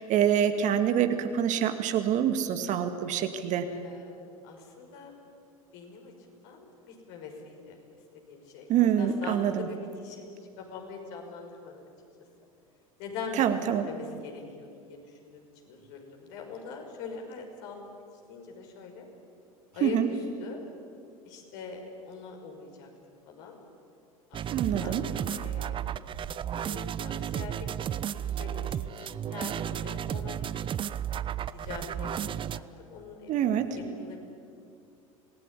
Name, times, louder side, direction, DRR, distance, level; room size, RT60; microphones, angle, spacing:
voice 1, 0.0-3.7 8.7-9.7 13.4-13.9 19.8-20.1 24.5-25.0 33.3-33.8, right 9 dB, 45° right, 8 dB, 2.0 m, -26 dB
voice 2, 3.7-5.1 5.7-6.1 6.4-7.8 8.3-11.9 13.0-13.4 13.9-17.8 18.3-19.1 19.7-20.0 20.4-20.6 21.2-22.9 23.3-23.6 24.3-24.4 24.8-25.7 26.5-30.4 30.8-30.9 31.6-32.2 32.5-34.2, left 5 dB, 55° left, 2 dB, 5.8 m, -43 dB
sound 1, 24.3-32.6, right 9 dB, 30° right, 0.7 m, -33 dB
26.5 x 19.0 x 10.0 m, 2.5 s
figure-of-eight pair, 80°, 18 cm